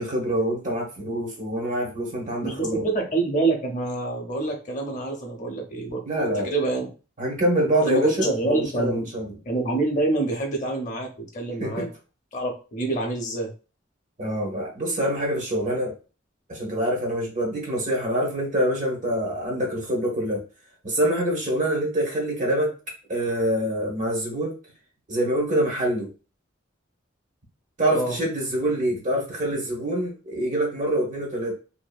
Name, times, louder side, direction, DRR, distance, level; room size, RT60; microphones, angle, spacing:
voice 1, 0.0-2.8 6.1-6.5 7.2-9.3 11.6-11.9 14.2-15.9 16.5-20.4 20.8-22.7 23.1-24.6 25.1-26.1 27.8-31.5, right 1 dB, 40° right, 0 dB, 1.0 m, -25 dB
voice 2, 2.4-6.0 6.4-6.9 7.8-9.1 9.5-11.9 12.3-13.5 27.9-28.1, right 2 dB, 40° left, 1 dB, 0.6 m, -26 dB
2.6 x 2.6 x 2.2 m, 0.34 s
head